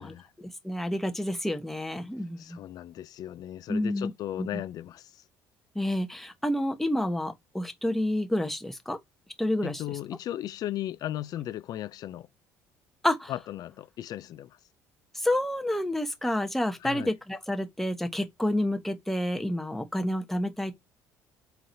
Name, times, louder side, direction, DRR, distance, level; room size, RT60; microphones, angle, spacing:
voice 1, 0.0-2.7 3.7-4.1 4.4-4.6 5.7-9.0 9.4-9.8 13.0-13.3 15.1-20.7, left 1 dB, 5° left, 1.0 m, -29 dB
voice 2, 2.4-5.2 9.6-12.3 13.3-14.6 16.8-17.1, left 12 dB, 55° left, 0.4 m, -36 dB
4.5 x 3.8 x 2.7 m
supercardioid pair, 70°, 8 cm